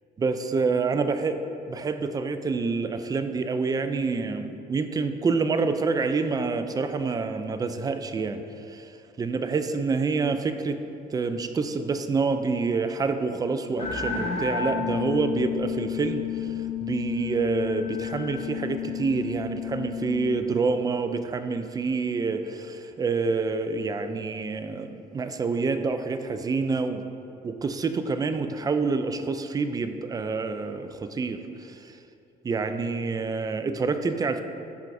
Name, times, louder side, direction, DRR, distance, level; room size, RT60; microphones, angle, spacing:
voice 1, 0.2-1.4 1.7-8.4 8.7-8.8 9.2-10.8 11.1-16.5 16.8-27.0 27.4-31.4 32.4-34.4, right 4 dB, 20° right, 8 dB, 0.4 m, -27 dB
sound 1, 13.8-20.4, left 8 dB, 40° left, 0.8 m, -31 dB
10.5 x 4.7 x 2.6 m, 2.6 s
cardioid pair, 110°, 17 cm